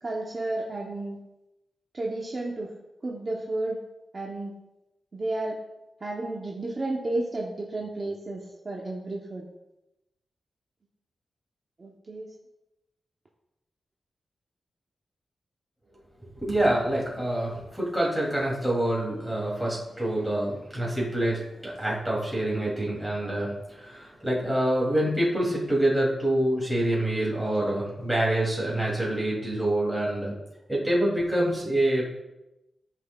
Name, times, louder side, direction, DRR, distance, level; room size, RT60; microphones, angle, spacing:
voice 1, 0.0-1.2 1.9-2.7 3.0-3.8 4.1-4.5 5.1-5.6 6.0-9.4 11.8-12.3, right 2 dB, 35° right, -2 dB, 0.9 m, -32 dB
voice 2, 16.4-30.3 30.7-32.1, right 1 dB, ahead, -5 dB, 2.8 m, -26 dB
13.5 x 5.5 x 2.4 m, 0.95 s
wide cardioid pair, 140°, 0 cm